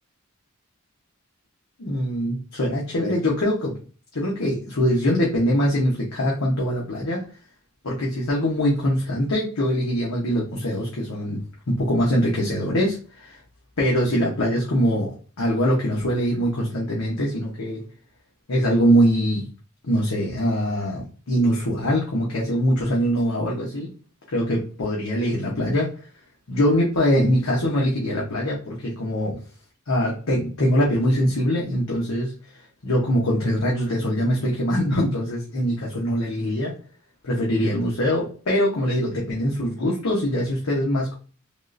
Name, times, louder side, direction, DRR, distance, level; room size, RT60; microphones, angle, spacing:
voice 1, 1.8-3.7 4.1-7.2 7.8-11.4 11.7-13.4 13.8-17.8 18.5-19.5 19.8-23.9 24.3-25.9 26.5-29.4 29.9-32.3 32.8-36.7 37.2-41.2, equal, 85° left, -3 dB, 0.9 m, -23 dB
3.5 x 2.4 x 2.5 m, 0.37 s
head